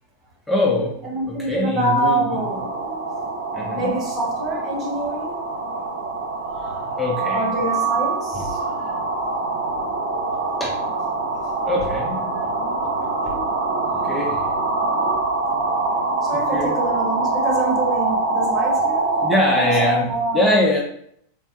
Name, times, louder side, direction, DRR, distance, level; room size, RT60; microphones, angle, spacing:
voice 1, 0.5-1.0 1.3-2.4 3.5-4.0 7.0-7.5 8.3-8.5 10.6-10.8 11.7-12.5 13.0-13.4 14.0-14.5 16.5-16.8 19.2-20.1 20.3-20.8, left 1 dB, 10° left, -2 dB, 0.5 m, -23 dB
voice 2, 1.0-3.0 3.7-5.4 6.5-6.8 7.3-9.0 14.0-14.2 16.2-19.1 19.5-20.6, right 1 dB, 35° right, -2 dB, 1.1 m, -26 dB
sound 1, 2.3-19.9, right 3 dB, 80° right, 0.6 m, -24 dB
3.4 x 2.1 x 2.6 m, 0.69 s
figure-of-eight pair, 90°, 0 cm